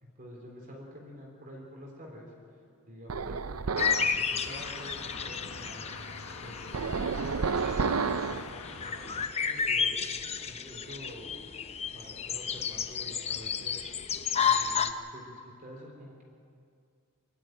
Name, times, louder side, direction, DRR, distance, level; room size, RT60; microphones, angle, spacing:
voice 1, 0.0-2.3 2.8-7.9 8.1-10.0 10.4-11.3 11.9-13.8 14.4-16.2, equal, 40° right, -1 dB, 3.6 m, -48 dB
sound 1, 3.1-4.2 6.7-8.5, right 5 dB, 75° right, 0.6 m, -30 dB
sound 2, 3.8-14.9, left 6 dB, 30° left, 0.8 m, -32 dB
sound 3, 3.9-9.3, left 4 dB, 85° left, 1.5 m, -44 dB
25.0 x 12.5 x 9.2 m, 2.3 s
head